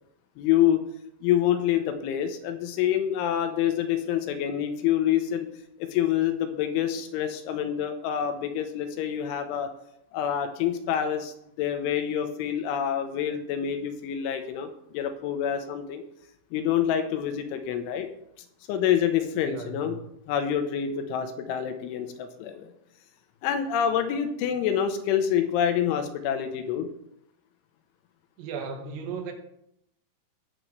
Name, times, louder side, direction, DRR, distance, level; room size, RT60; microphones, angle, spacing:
voice 1, 0.4-0.8 1.2-5.5 5.8-9.7 10.1-16.0 16.5-18.1 18.7-20.0 20.3-22.7 23.4-26.9, left 9 dB, 80° left, 7 dB, 3.2 m, -27 dB
voice 2, 19.5-20.0 28.4-29.3, right 6 dB, 90° right, 4 dB, 4.2 m, -36 dB
18.5 x 7.6 x 3.2 m, 0.77 s
omnidirectional pair, 5.8 m